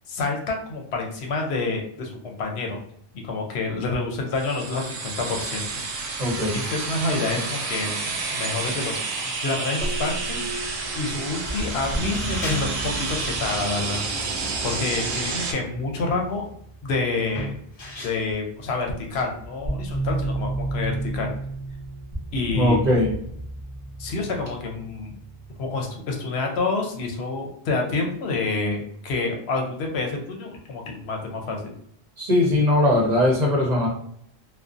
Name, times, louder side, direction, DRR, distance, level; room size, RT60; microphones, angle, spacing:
voice 1, 0.1-2.8 3.2-5.7 6.5-8.0 8.3-9.0 9.4-10.5 10.9-14.0 14.6-16.5 16.8-17.5 18.0-21.3 22.3-22.9 24.0-25.1 25.6-31.7, left 3 dB, 80° left, 1 dB, 0.9 m, -28 dB
sound 1, 4.3-15.5, right 4 dB, 90° right, 0.8 m, -30 dB
voice 2, 6.2-6.6 22.5-23.2 32.2-33.9, left 1 dB, 45° right, -3 dB, 0.7 m, -20 dB
sound 2, 9.8-16.6 18.3-18.4 18.9-26.0, right 2 dB, 15° left, 0.8 m, -33 dB
sound 3, 12.2-19.4, left 1 dB, 50° left, 0.7 m, -40 dB
2.5 x 2.1 x 2.4 m, 0.68 s
omnidirectional pair, 1.1 m